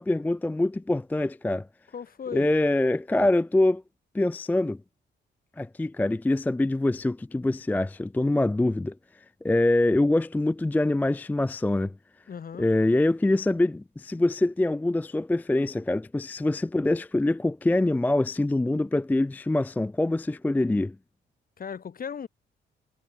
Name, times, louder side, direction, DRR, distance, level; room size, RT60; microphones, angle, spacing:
voice 1, 0.0-1.7 2.3-3.8 4.1-4.8 5.6-8.9 9.4-11.9 12.6-21.0, left 2 dB, 10° left, 0.4 m, -24 dB
voice 2, 1.9-2.5 12.3-12.7 21.6-22.3, left 7 dB, 45° left, 3.6 m, -36 dB
cardioid pair, 90°, 20 cm